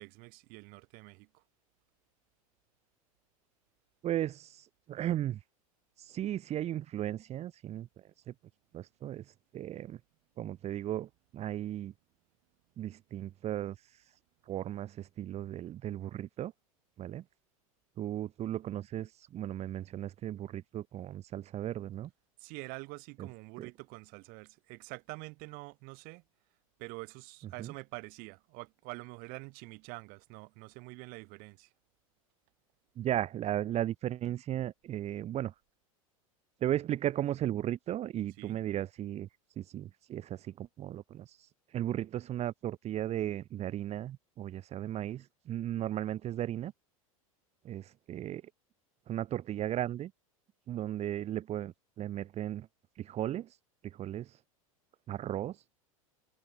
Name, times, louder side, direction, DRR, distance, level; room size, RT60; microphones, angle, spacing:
voice 1, 0.0-1.4 22.4-26.2 26.8-31.7 38.4-38.6, right 28 dB, 55° right, 4.8 m, -46 dB
voice 2, 4.0-5.4 6.0-7.9 8.3-8.4 8.7-10.0 10.4-11.9 12.8-14.1 14.4-16.5 17.0-17.2 18.0-22.1 23.2-23.3 23.6-23.7 27.6-27.7 33.0-35.5 36.6-39.3 39.6-46.7 47.7-48.4 49.1-50.1 50.7-52.7 53.0-53.6 53.8-54.4 55.1-55.6, right 12 dB, 35° right, 1.7 m, -36 dB
hypercardioid pair, 90°, 18 cm